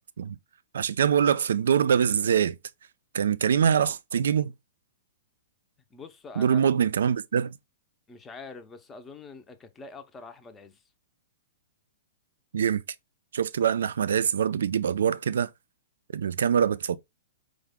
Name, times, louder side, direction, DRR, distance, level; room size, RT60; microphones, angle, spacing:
voice 1, 0.7-2.6 3.1-4.5 6.4-7.6 12.5-12.8 13.3-15.5 16.1-17.0, right 8 dB, 80° right, 0.3 m, -24 dB
voice 2, 5.9-6.7 8.1-10.8, left 4 dB, 15° left, 0.5 m, -45 dB
4.7 x 2.1 x 3.5 m
hypercardioid pair, 135°, 0 cm